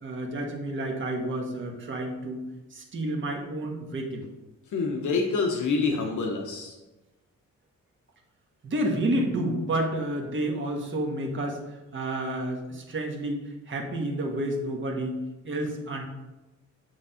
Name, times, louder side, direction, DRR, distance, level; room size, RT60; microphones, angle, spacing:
voice 1, 0.0-2.4 2.7-4.2 8.6-11.6 11.9-13.4 13.7-15.2 15.4-16.0, right 1 dB, 40° right, 1 dB, 1.3 m, -30 dB
voice 2, 4.7-6.7, left 4 dB, 75° left, 1 dB, 0.9 m, -27 dB
7.8 x 3.5 x 5.6 m, 1.1 s
wide cardioid pair, 165°, 30 cm